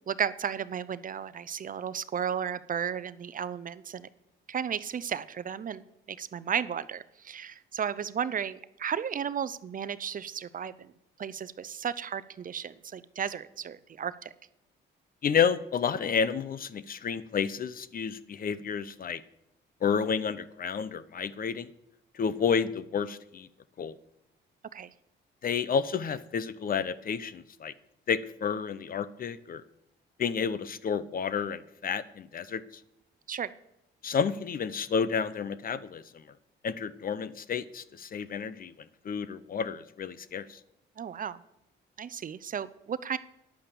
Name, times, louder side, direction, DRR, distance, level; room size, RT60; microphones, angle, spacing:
voice 1, 0.1-4.1 4.5-10.9 11.2-14.3 24.7-24.9 33.3-33.5 41.0-41.4 42.0-43.2, right 8 dB, 45° right, 16 dB, 0.6 m, -34 dB
voice 2, 15.2-19.2 19.8-21.7 22.1-23.5 23.8-23.9 25.4-27.7 28.1-29.6 30.2-32.8 34.0-36.2 36.6-40.6, left 6 dB, 45° left, 16 dB, 0.7 m, -30 dB
10.0 x 8.6 x 7.0 m, 0.85 s
cardioid pair, 90°, 20 cm